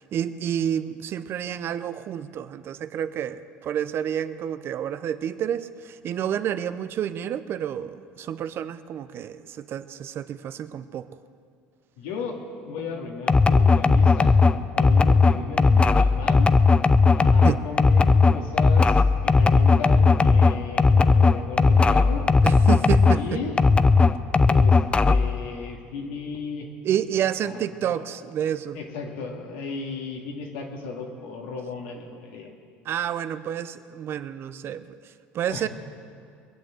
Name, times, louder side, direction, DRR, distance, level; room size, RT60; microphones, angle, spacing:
voice 1, 0.0-11.1 17.4-17.6 22.4-23.4 26.8-28.8 32.8-35.0 35.3-35.7, right 9 dB, 50° right, 13 dB, 0.7 m, -29 dB
voice 2, 12.0-12.4 12.6-14.4 14.8-16.5 17.1-22.3 23.1-23.6 24.4-24.8 25.1-26.7 27.4-28.0 28.7-32.5 35.5-35.7, left 4 dB, 85° left, 1 dB, 2.3 m, -35 dB
sound 1, 13.3-23.2 23.6-25.4, left 4 dB, 20° left, 0.5 m, -17 dB
22.0 x 7.8 x 7.7 m, 2.2 s
supercardioid pair, 85°, 5 cm